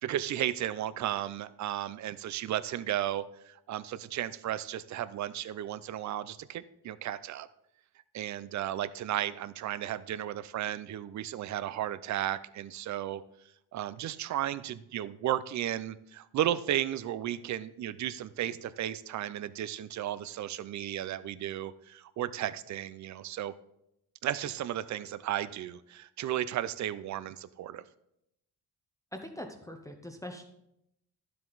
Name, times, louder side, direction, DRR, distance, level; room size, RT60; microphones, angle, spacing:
voice 1, 0.0-7.5 8.1-13.2 13.7-23.5 24.2-27.8, right 12 dB, 50° right, 16 dB, 0.5 m, -34 dB
voice 2, 29.1-30.4, left 1 dB, 10° left, 3 dB, 0.7 m, -42 dB
12.0 x 7.6 x 3.9 m, 0.80 s
cardioid pair, 165°, 39 cm